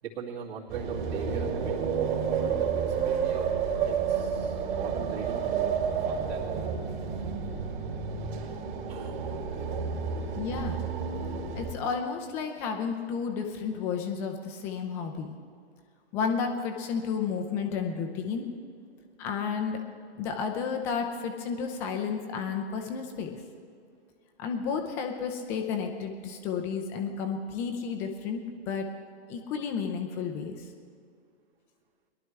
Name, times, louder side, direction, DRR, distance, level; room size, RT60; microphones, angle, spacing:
voice 1, 0.0-1.9 2.4-3.5 3.8-5.8 6.1-6.7 8.9-9.2, right 6 dB, 60° right, -10 dB, 2.7 m, -41 dB
sound 1, 0.7-11.7, right 6 dB, 45° right, 2.7 m, -30 dB
voice 2, 10.3-10.9 11.5-15.3 16.1-18.5 19.2-19.8 20.2-23.4 24.4-28.4 28.7-28.9 29.3-30.7, left 6 dB, 10° left, 3 dB, 0.3 m, -32 dB
21.5 x 11.5 x 3.3 m, 2.2 s
figure-of-eight pair, 120°, 33 cm